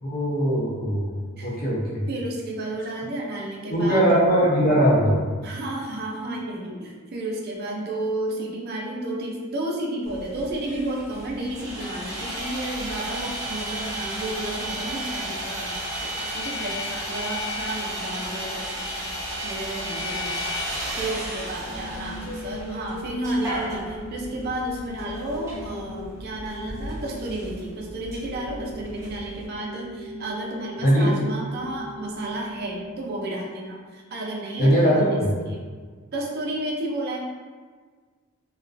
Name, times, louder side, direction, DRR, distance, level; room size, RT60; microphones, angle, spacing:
voice 1, 0.0-2.0 3.7-5.2 30.8-31.1 34.6-35.3, equal, 45° left, -6 dB, 0.7 m, -20 dB
voice 2, 2.1-4.0 5.4-19.1 19.4-20.4 20.7-35.6 36.1-37.2, right 1 dB, 50° right, -1 dB, 0.4 m, -32 dB
Sawing, 10.1-29.4, equal, 15° right, 0.6 m, -33 dB
sound 1, 21.7-33.7, equal, 75° left, 0.4 m, -39 dB
2.3 x 2.2 x 2.5 m, 1.5 s
head